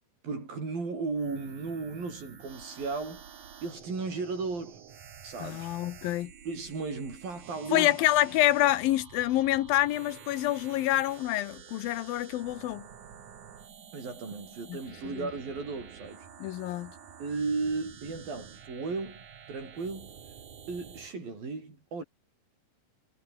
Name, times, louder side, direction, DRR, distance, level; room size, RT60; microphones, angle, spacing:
voice 1, 0.2-3.2 3.6-4.8 5.2-5.7 6.5-8.0 13.9-16.3 17.2-20.2 20.7-22.0, right 4 dB, 80° right, 9.5 m, -35 dB
sound 1, 1.2-21.1, right 7 dB, 60° right, 4.0 m, -49 dB
voice 2, 5.4-6.3 7.7-12.9 14.7-15.3 16.4-16.9, left 15 dB, 85° left, 2.8 m, -27 dB
omnidirectional pair, 4.1 m